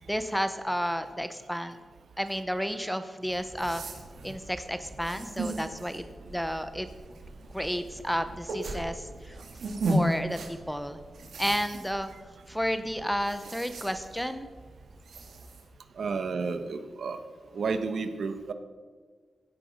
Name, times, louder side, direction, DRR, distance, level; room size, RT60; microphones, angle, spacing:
voice 1, 0.1-1.8 2.2-3.8 4.2-6.9 7.5-9.4 9.9-11.0 11.4-12.1 12.5-14.5, equal, ahead, 10 dB, 0.6 m, -31 dB
sound 1, 3.2-15.7, right 1 dB, 85° right, 2.2 m, -37 dB
voice 2, 16.0-17.2 17.5-18.5, right 4 dB, 65° right, 9 dB, 1.0 m, -31 dB
16.0 x 8.9 x 5.2 m, 1.5 s
wide cardioid pair, 155°, 0 cm